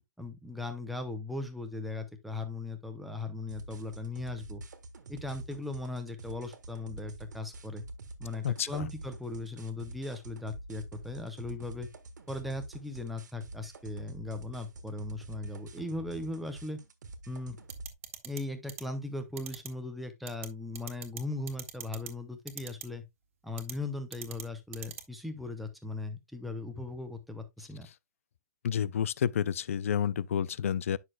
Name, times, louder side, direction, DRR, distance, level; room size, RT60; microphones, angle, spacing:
voice 1, 0.2-4.6 5.1-7.8 8.2-11.9 12.3-16.8 17.3-17.6 18.2-23.0 23.4-27.9, left 2 dB, ahead, 0.6 m, -38 dB
sound 1, 3.5-17.9, right 2 dB, 75° right, 1.7 m, -47 dB
voice 2, 8.4-8.9 28.6-31.0, left 8 dB, 50° left, 0.5 m, -30 dB
sound 2, 17.7-18.4 18.7-18.8 19.4-19.7 20.3-20.5 20.8-21.2 21.5-22.1 22.5-22.8 23.6-23.7 24.1-24.4 24.7-25.0, right 9 dB, 45° right, 1.5 m, -40 dB
9.3 x 6.4 x 2.2 m
hypercardioid pair, 175°, 10 cm